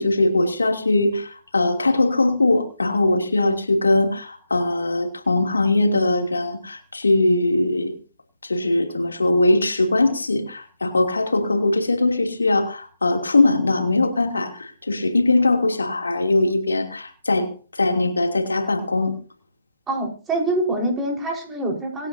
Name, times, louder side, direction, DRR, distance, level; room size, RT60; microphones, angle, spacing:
voice 1, 0.0-7.9 8.4-19.1, left 2 dB, 85° left, 3.0 m, -21 dB
voice 2, 19.9-22.1, right 1 dB, 15° right, 4.8 m, -25 dB
26.0 x 9.7 x 2.8 m
figure-of-eight pair, 130°, 0 cm